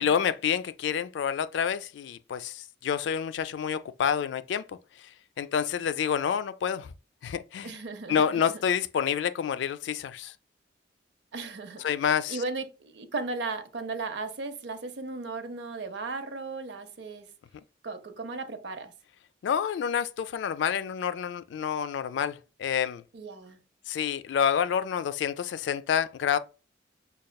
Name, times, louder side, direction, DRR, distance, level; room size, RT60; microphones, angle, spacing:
voice 1, 0.0-4.7 5.0-5.1 5.4-6.9 7.2-7.7 8.1-10.3 11.8-12.4 19.4-23.0 23.9-26.4, left 8 dB, 75° left, 0.3 m, -28 dB
voice 2, 7.6-8.6 11.3-11.8 12.3-17.3 17.8-18.9 23.1-23.6, right 3 dB, 65° right, 0.6 m, -36 dB
5.1 x 2.3 x 2.2 m
head